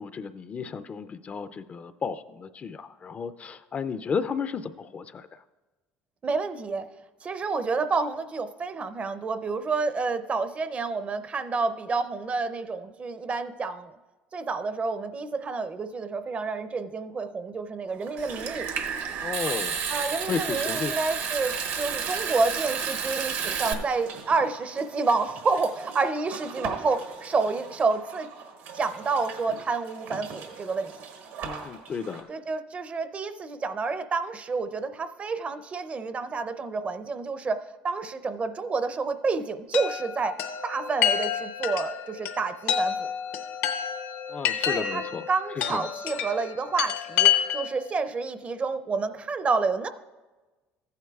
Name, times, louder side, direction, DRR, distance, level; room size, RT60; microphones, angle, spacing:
voice 1, 0.0-5.3 19.2-19.8 20.3-20.9 31.4-32.3 44.3-45.2 45.6-45.9, left 5 dB, 35° left, 12 dB, 0.4 m, -33 dB
voice 2, 6.2-6.9 7.2-14.0 14.3-18.7 19.9-28.3 28.7-31.0 32.3-40.4 40.6-43.1 44.6-49.9, right 4 dB, 30° right, 12 dB, 0.5 m, -29 dB
sound 1, 17.9-32.2, right 5 dB, 85° right, 1.5 m, -42 dB
Water tap faucet / Sink (filling or washing) / Trickle dribble, 18.2-23.7, right 6 dB, 65° right, 0.8 m, -31 dB
Chime, 39.7-47.8, left 9 dB, 80° left, 0.8 m, -28 dB
14.5 x 9.3 x 2.3 m, 1.2 s
cardioid pair, 105°, 4 cm